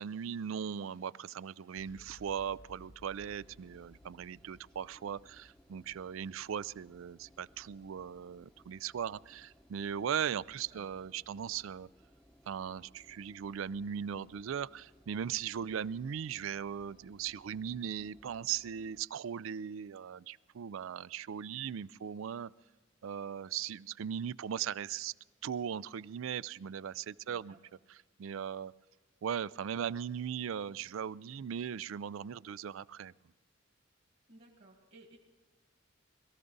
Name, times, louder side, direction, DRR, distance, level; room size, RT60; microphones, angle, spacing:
voice 1, 0.0-11.9 12.5-22.5 23.0-25.1 25.4-27.5 28.2-28.7 29.2-33.1, right 8 dB, 75° right, 20 dB, 0.4 m, -38 dB
sound 1, 1.8-8.4, left 1 dB, 65° left, 0.7 m, -61 dB
Engine, 3.1-19.0, equal, 5° left, 0.8 m, -64 dB
voice 2, 27.2-27.6 34.3-35.2, right 2 dB, 50° right, -1 dB, 2.1 m, -58 dB
22.0 x 14.5 x 4.0 m, 1.3 s
head